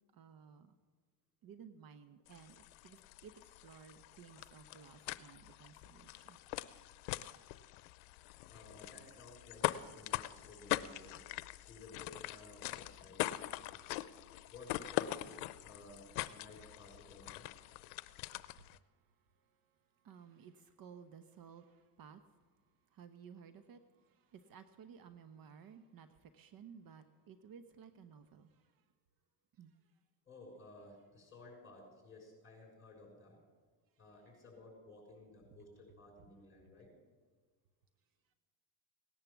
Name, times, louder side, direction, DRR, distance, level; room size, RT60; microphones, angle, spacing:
voice 1, 0.1-0.7 1.4-6.4 20.0-22.2 22.9-28.5 29.6-29.7, right 7 dB, 50° right, 10 dB, 1.0 m, -56 dB
sound 1, 2.3-18.8, left 17 dB, 85° left, 0.7 m, -43 dB
voice 2, 8.5-11.2 11.6-13.8 14.5-15.3 15.6-17.4 30.3-33.4 34.0-36.9, left 2 dB, 25° left, 0 dB, 6.7 m, -56 dB
18.0 x 10.5 x 7.2 m, 1.4 s
cardioid pair, 110°, 46 cm